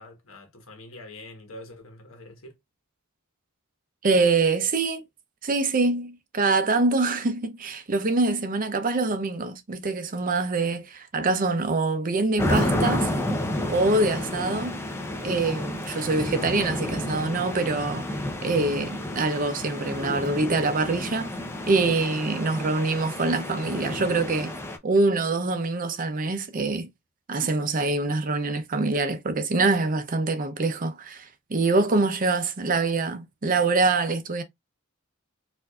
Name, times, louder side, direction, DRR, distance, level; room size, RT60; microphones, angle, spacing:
voice 1, 0.0-2.6, left 1 dB, 75° left, 1.3 m, -45 dB
voice 2, 4.0-5.0 5.4-13.1 13.7-14.8 15.2-18.1 18.4-21.3 21.6-24.5 24.8-26.9 27.3-34.4, right 3 dB, 40° right, 0.6 m, -25 dB
sound 1, 12.4-24.8, left 1 dB, 10° left, 0.6 m, -30 dB
4.6 x 2.6 x 2.3 m
head